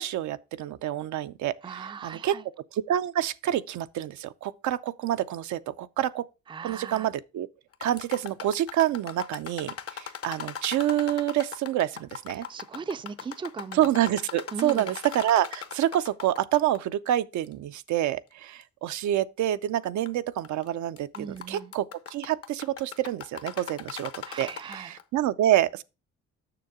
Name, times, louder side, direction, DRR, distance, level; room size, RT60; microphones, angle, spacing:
voice 1, 0.0-2.4 2.7-6.3 6.6-7.5 7.8-12.5 13.7-24.1 24.4-25.8, right 12 dB, 70° right, 0.5 m, -27 dB
voice 2, 1.6-2.5 6.5-7.1 12.3-13.9 14.5-14.9 21.1-21.7 24.3-25.0, right 6 dB, 15° right, 0.4 m, -38 dB
sound 1, 7.7-16.8 17.1-17.2 17.9-18.0 18.6-18.7 19.8-20.1 20.4-20.7 21.0-25.0, left 8 dB, 50° left, 0.8 m, -39 dB
6.8 x 6.4 x 3.6 m
cardioid pair, 90°, 30 cm